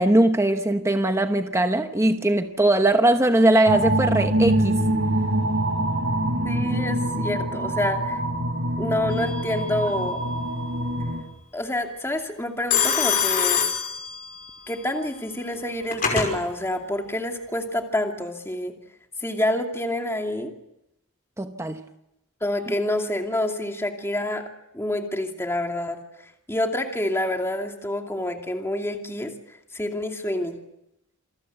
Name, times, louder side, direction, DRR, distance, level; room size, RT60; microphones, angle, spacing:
voice 1, 0.0-4.8 21.4-21.8, right 1 dB, 10° right, 1.0 m, -20 dB
sound 1, 3.7-11.2, right 1 dB, 55° right, 6.4 m, -24 dB
voice 2, 6.4-8.2 8.8-10.2 11.5-13.6 14.7-18.7 19.2-20.5 22.4-24.5 24.7-26.0 26.5-30.6, left 1 dB, 10° left, 2.5 m, -27 dB
Telephone, 9.1-9.6 12.7-14.6 15.5-16.3, left 7 dB, 40° left, 5.5 m, -24 dB
28.0 x 20.5 x 8.1 m
head